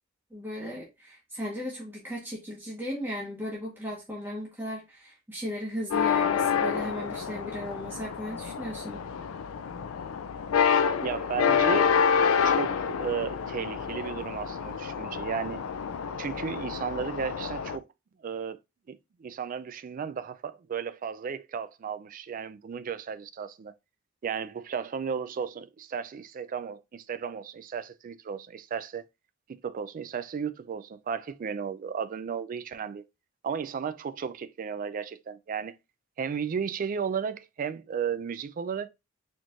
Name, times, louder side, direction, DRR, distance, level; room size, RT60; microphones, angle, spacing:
voice 1, 0.3-9.0, left 1 dB, 10° right, 1.0 m, -36 dB
sound 1, 5.9-17.8, left 6 dB, 85° left, 0.4 m, -28 dB
voice 2, 11.0-11.9 12.4-15.6 16.2-17.9 18.2-18.6 18.9-23.7 24.2-29.0 29.6-33.0 33.4-35.7 36.2-38.9, right 7 dB, 40° right, 0.3 m, -34 dB
4.3 x 3.1 x 2.4 m
head